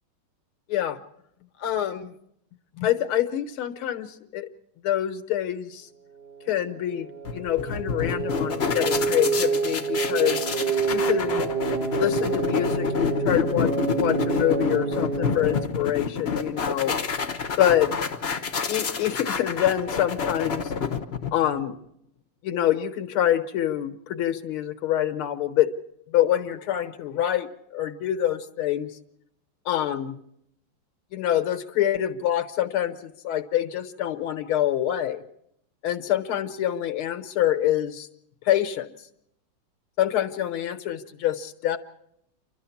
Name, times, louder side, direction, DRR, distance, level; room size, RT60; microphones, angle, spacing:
voice 1, 1.6-2.1 2.8-4.5 4.8-5.9 6.5-10.5 10.9-11.5 12.0-16.9 17.6-17.9 18.7-20.7 21.3-21.8 22.4-25.7 26.1-28.9 29.7-30.2 31.1-35.2 35.8-38.1 38.4-38.9 40.0-41.8, left 12 dB, 85° left, 8 dB, 2.0 m, -26 dB
sound 1, 6.2-15.7, right 5 dB, 40° right, 1.1 m, -28 dB
sound 2, 7.3-21.6, left 6 dB, 40° left, 0.9 m, -28 dB
29.5 x 12.5 x 7.1 m, 0.77 s
omnidirectional pair, 2.3 m